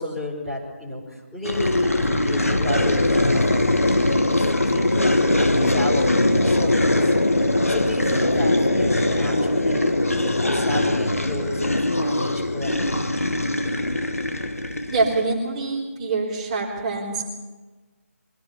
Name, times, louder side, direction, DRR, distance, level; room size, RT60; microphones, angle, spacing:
voice 1, 0.0-4.0 4.3-7.1 7.7-13.0, left 1 dB, 5° left, -8 dB, 5.1 m, -32 dB
sound 1, 1.5-15.3, left 1 dB, 85° left, 1.5 m, -21 dB
voice 2, 14.9-17.2, right 3 dB, 30° right, -5 dB, 3.6 m, -25 dB
24.0 x 16.5 x 7.0 m, 1.3 s
figure-of-eight pair, 150°, 8 cm